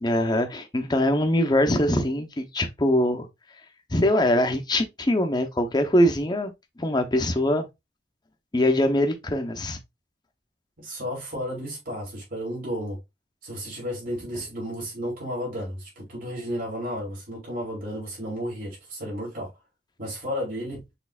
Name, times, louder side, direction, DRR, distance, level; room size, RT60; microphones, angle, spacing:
voice 1, 0.0-3.3 3.9-6.5 6.8-7.7 8.5-9.8, left 1 dB, 25° left, 0.7 m, -23 dB
voice 2, 10.8-13.0 13.4-19.5 20.0-20.8, equal, 55° right, 2.7 m, -33 dB
6.2 x 3.2 x 2.4 m
head